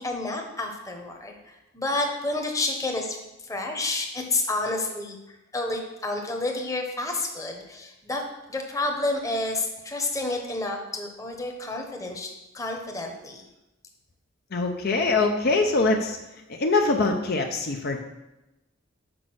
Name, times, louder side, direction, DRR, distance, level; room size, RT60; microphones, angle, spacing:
voice 1, 0.0-8.2 8.5-13.4, left 2 dB, 15° left, 2 dB, 1.0 m, -30 dB
voice 2, 14.5-16.2 16.5-18.0, left 3 dB, 50° left, 3 dB, 0.6 m, -23 dB
6.1 x 5.1 x 6.2 m, 0.96 s
head